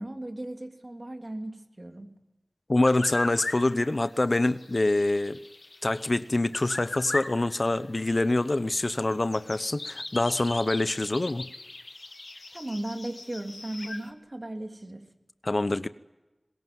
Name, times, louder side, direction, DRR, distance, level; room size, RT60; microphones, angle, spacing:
voice 1, 0.0-2.1 12.5-15.0, right 1 dB, 40° right, 3.1 m, -36 dB
voice 2, 2.7-5.4 5.8-11.5 15.4-15.9, left 2 dB, 50° left, 0.8 m, -25 dB
sound 1, 2.8-14.1, left 2 dB, 70° left, 1.7 m, -39 dB
23.0 x 20.5 x 9.3 m
wide cardioid pair, 50°, 0 cm